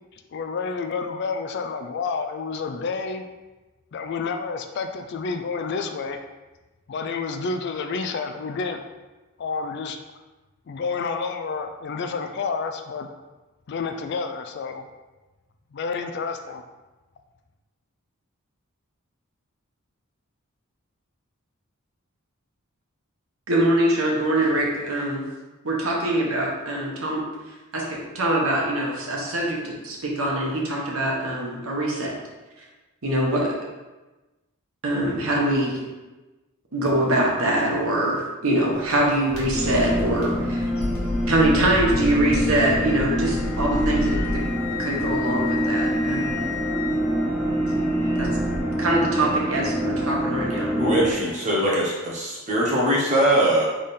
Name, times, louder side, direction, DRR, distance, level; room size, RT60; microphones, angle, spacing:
voice 1, 0.1-3.2 3.9-6.2 6.9-8.8 9.4-10.0 10.7-13.1 13.7-14.9 15.7-16.6, left 4 dB, 50° left, 6 dB, 0.3 m, -29 dB
voice 2, 23.5-25.2 25.6-27.2 27.7-32.1 33.0-33.5 34.8-35.8 36.7-40.7 41.3-44.5 44.8-46.4 48.2-48.3 48.8-50.8, right 1 dB, 75° right, -2 dB, 1.1 m, -23 dB
sound 1, 38.7-48.6, left 1 dB, 85° left, 1.3 m, -32 dB
sound 2, 39.5-51.1, equal, 5° right, 0.7 m, -26 dB
Wind instrument woodwind instrument, 42.7-48.6, left 11 dB, 65° left, 0.8 m, -36 dB
voice 3, 50.8-53.7, right 1 dB, 35° right, -4 dB, 0.9 m, -21 dB
3.6 x 3.4 x 4.2 m, 1.1 s
head